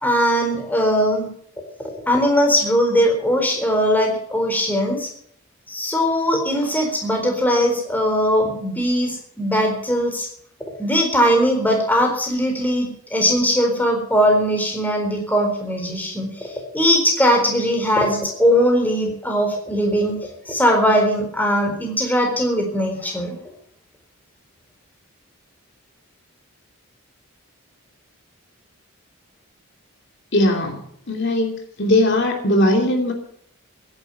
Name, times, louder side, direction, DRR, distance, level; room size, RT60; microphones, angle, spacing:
voice 1, 0.0-1.3 1.8-5.1 5.7-10.3 10.8-20.2 20.5-23.4, equal, 10° left, 2 dB, 4.2 m, -20 dB
voice 2, 30.3-30.8 31.1-31.5 31.8-33.1, left 1 dB, 55° left, 2 dB, 2.9 m, -18 dB
16.0 x 10.5 x 7.1 m, 0.67 s
head